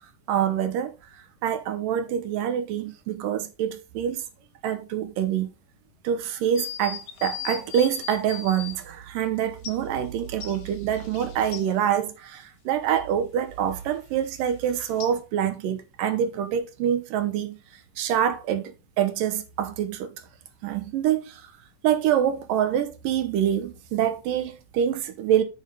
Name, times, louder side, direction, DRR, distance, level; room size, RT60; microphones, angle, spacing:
voice 1, 0.3-0.9 1.4-4.2 4.6-5.5 6.0-17.6 18.0-20.1 20.6-21.4 21.8-25.4, right 9 dB, 80° right, 2.6 m, -26 dB
sound 1, 6.6-8.8 9.6-9.8 10.4-11.6 15.0-15.1, left 9 dB, 65° left, 1.6 m, -37 dB
9.8 x 5.3 x 3.7 m
omnidirectional pair, 3.9 m